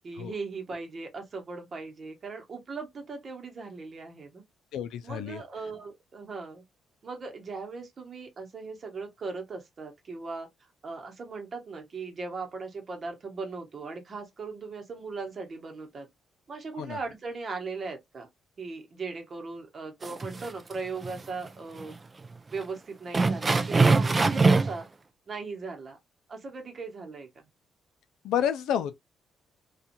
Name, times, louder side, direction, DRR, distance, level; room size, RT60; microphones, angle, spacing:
voice 1, 0.0-4.4 5.0-6.6 7.0-10.5 10.8-16.1 16.5-18.3 18.6-21.9 22.5-24.9 25.3-26.0 26.3-27.4, right 4 dB, 45° right, 0.9 m, -38 dB
voice 2, 4.7-5.4 16.8-17.0 28.2-29.0, left 9 dB, 85° left, 0.4 m, -29 dB
sound 1, 20.0-20.7 21.0-21.2 21.8-21.9 22.2-22.3 23.1-24.8, right 3 dB, 30° right, 0.4 m, -22 dB
2.8 x 2.4 x 2.5 m
cardioid pair, 90°, 0 cm